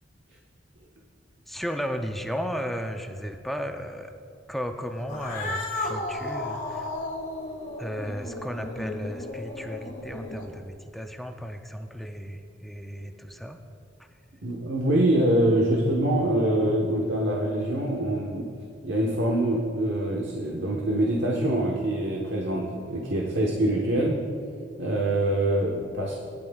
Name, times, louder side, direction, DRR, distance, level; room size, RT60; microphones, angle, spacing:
voice 1, 1.5-4.1 4.5-6.9 7.8-13.6, equal, ahead, 5 dB, 0.5 m, -34 dB
Cat, 5.0-10.7, left 2 dB, 45° left, 1.7 m, -34 dB
voice 2, 14.4-18.5 18.8-24.2 24.8-26.1, right 1 dB, 70° right, -2 dB, 1.2 m, -24 dB
19.0 x 12.0 x 2.4 m, 2.5 s
head